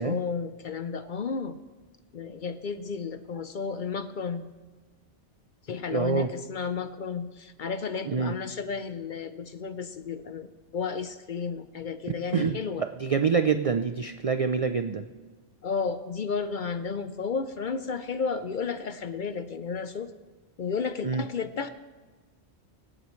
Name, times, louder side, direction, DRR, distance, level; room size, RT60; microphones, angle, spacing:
voice 1, 0.0-1.6 2.1-4.5 5.7-12.8 15.6-20.1 20.6-21.7, left 5 dB, 55° left, 11 dB, 0.6 m, -32 dB
voice 2, 5.9-6.3 8.1-8.3 12.3-15.1 21.0-21.2, right 6 dB, 55° right, 8 dB, 0.3 m, -26 dB
24.5 x 8.9 x 3.1 m, 1.3 s
omnidirectional pair, 1.2 m